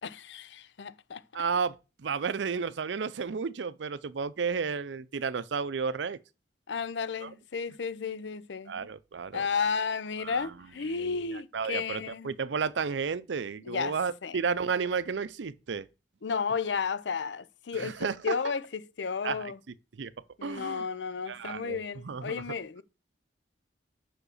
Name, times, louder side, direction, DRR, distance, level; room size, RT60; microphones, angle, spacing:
voice 1, 0.0-1.2 6.7-8.9 9.3-12.3 13.6-14.0 14.2-14.4 16.2-19.6 20.4-22.8, left 5 dB, 80° left, 0.6 m, -33 dB
voice 2, 1.3-6.2 7.2-7.3 8.7-9.4 10.2-10.5 11.0-15.9 17.7-18.4 19.2-19.5 20.0-20.1 20.4-20.9 21.3-22.4, right 5 dB, 80° right, 0.5 m, -32 dB
5.8 x 5.0 x 6.5 m
head